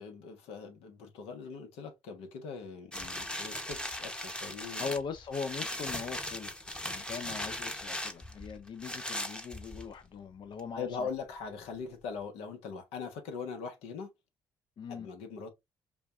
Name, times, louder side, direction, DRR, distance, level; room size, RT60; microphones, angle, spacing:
voice 1, 0.0-4.9 10.7-14.1 14.9-15.5, left 5 dB, 75° left, 1.1 m, -41 dB
sound 1, 2.9-10.1 10.6-10.7, left 1 dB, 10° left, 0.9 m, -38 dB
voice 2, 4.8-6.5 6.8-11.1 14.8-15.1, left 5 dB, 50° left, 0.5 m, -40 dB
5.0 x 2.4 x 2.4 m
hypercardioid pair, 60°, 10 cm